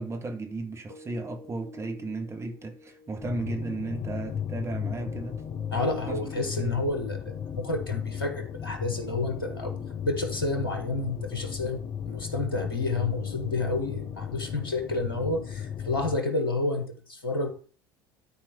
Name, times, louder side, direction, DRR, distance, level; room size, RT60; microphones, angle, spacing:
voice 1, 0.0-5.4 6.1-6.3 6.6-6.8, right 2 dB, 25° right, 1.9 m, -34 dB
sound 1, 0.9-16.9, equal, 85° right, 2.7 m, -50 dB
sound 2, 3.2-16.2, left 8 dB, 40° left, 0.7 m, -35 dB
voice 2, 5.7-9.7 10.0-11.8 12.0-17.5, left 2 dB, 85° left, 1.5 m, -30 dB
12.5 x 4.5 x 5.4 m
figure-of-eight pair, 65°, 12 cm